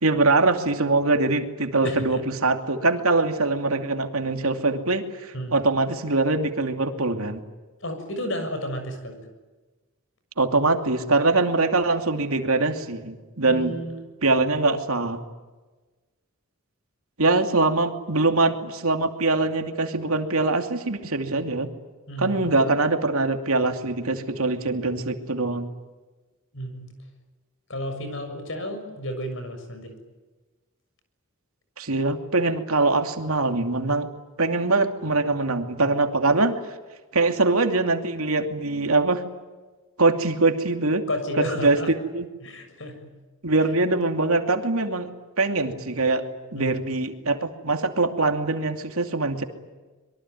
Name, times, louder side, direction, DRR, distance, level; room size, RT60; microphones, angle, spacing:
voice 1, 0.0-7.4 10.4-13.7 14.2-15.2 17.2-21.7 22.2-25.7 31.8-34.1 34.4-36.6 37.1-39.2 40.0-41.0 41.4-42.3 43.4-45.1 45.4-46.2 46.5-49.4, right 3 dB, 80° right, 6 dB, 2.7 m, -23 dB
voice 2, 1.8-2.2 5.3-5.5 7.8-9.2 13.4-14.1 22.1-22.5 26.5-26.9 27.7-29.9 41.1-41.9 42.4-43.1 46.5-46.7, equal, 60° left, 7 dB, 6.8 m, -32 dB
25.5 x 23.0 x 9.5 m, 1.2 s
head